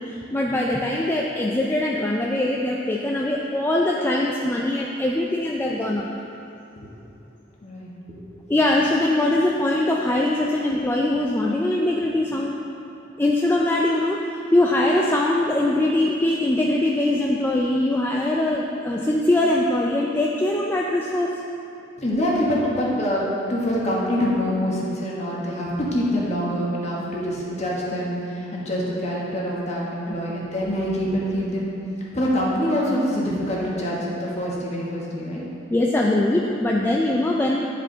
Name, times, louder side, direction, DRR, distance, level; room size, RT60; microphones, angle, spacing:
voice 1, 0.1-6.1 8.5-12.6 13.2-21.3 30.1-30.2 35.7-37.6, left 1 dB, 10° left, -2 dB, 0.3 m, -22 dB
voice 2, 7.6-7.9 22.0-31.7 32.1-35.4, equal, 35° left, -5 dB, 1.4 m, -25 dB
10.0 x 4.9 x 3.9 m, 2.8 s
head